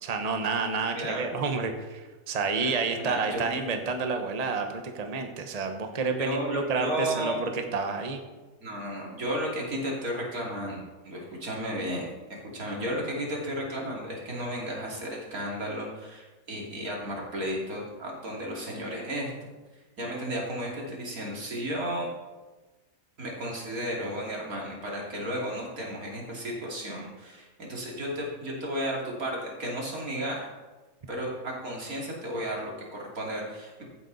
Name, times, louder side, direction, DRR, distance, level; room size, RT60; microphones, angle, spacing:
voice 1, 0.0-8.2, right 4 dB, 30° right, 5 dB, 1.0 m, -29 dB
voice 2, 0.9-1.2 2.5-2.7 3.0-3.6 6.2-7.4 8.6-12.1 12.5-19.3 20.0-22.1 23.2-30.5 31.1-33.7, equal, 85° right, -2 dB, 3.3 m, -33 dB
15.5 x 8.5 x 4.1 m, 1.2 s
omnidirectional pair, 1.5 m